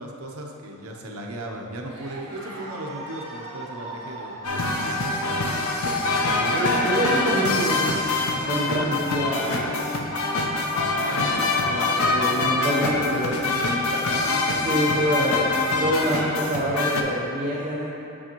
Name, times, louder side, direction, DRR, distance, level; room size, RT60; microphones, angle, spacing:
voice 1, 0.0-5.1 11.1-14.0, right 1 dB, 75° right, 1 dB, 0.7 m, -36 dB
Cheering, 1.8-13.1 13.4-13.8 14.2-14.3 14.5-15.3, right 2 dB, 60° right, 1.5 m, -41 dB
sound 1, 4.4-17.0, left 2 dB, 75° left, 0.6 m, -24 dB
voice 2, 6.3-8.0 8.4-9.9 11.9-13.6 14.5-15.4 15.8-17.8, equal, 35° right, -8 dB, 0.7 m, -26 dB
8.6 x 5.0 x 3.0 m, 2.8 s
head